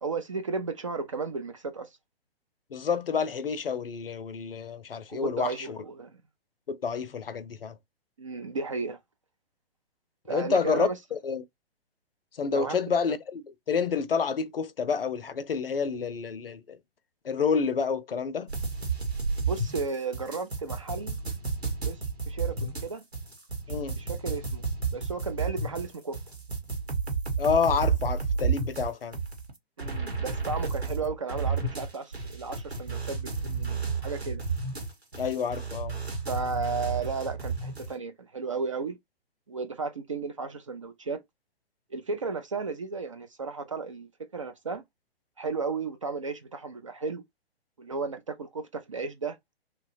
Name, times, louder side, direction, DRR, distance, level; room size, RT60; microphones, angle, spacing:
voice 1, 0.0-1.9 5.1-6.1 8.2-9.0 10.3-11.0 12.5-12.8 19.5-21.2 21.9-23.0 24.0-24.6 24.9-26.2 29.8-34.4 36.3-39.0 39.5-41.2 41.9-44.8 45.4-47.2 47.8-49.4, right 4 dB, 35° right, 0.4 m, -34 dB
voice 2, 2.7-5.8 6.7-7.8 10.3-11.4 12.4-16.8 17.2-18.5 23.7-24.0 27.4-29.2 35.2-36.0, left 6 dB, 65° left, 0.6 m, -29 dB
sound 1, 18.5-37.9, right 4 dB, 90° right, 1.2 m, -32 dB
2.9 x 2.2 x 2.6 m
figure-of-eight pair, 125°, 31 cm